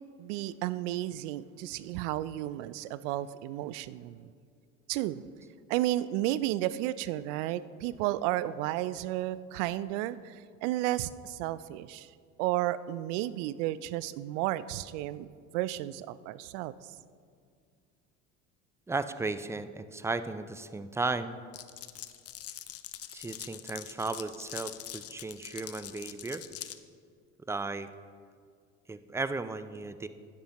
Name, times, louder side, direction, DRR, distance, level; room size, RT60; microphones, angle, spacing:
voice 1, 0.2-4.3 4.9-5.2 5.7-12.1 12.4-16.7, right 14 dB, 75° right, 17 dB, 0.5 m, -33 dB
voice 2, 18.9-21.4 23.1-26.4 27.5-27.9 28.9-30.1, right 3 dB, 10° right, 12 dB, 0.3 m, -35 dB
Glass, 21.5-26.8, left 12 dB, 40° left, 0.6 m, -43 dB
11.5 x 10.5 x 3.0 m, 2.2 s
hypercardioid pair, 70°, 37 cm